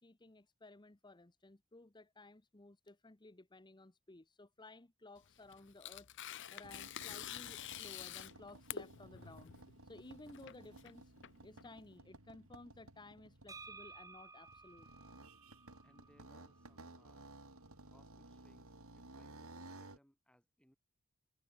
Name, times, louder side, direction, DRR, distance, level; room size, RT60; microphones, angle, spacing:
voice 1, 0.0-9.5 9.8-11.1 11.4-14.9, left 2 dB, 20° left, 0.9 m, -57 dB
Tearing, 5.2-11.9, left 10 dB, 55° left, 0.9 m, -48 dB
sound 1, 6.6-20.0, right 2 dB, 75° right, 3.9 m, -57 dB
sound 2, 13.5-17.3, right 3 dB, 15° right, 2.2 m, -56 dB
voice 2, 15.8-17.4 17.9-20.8, equal, 5° left, 3.8 m, -70 dB
head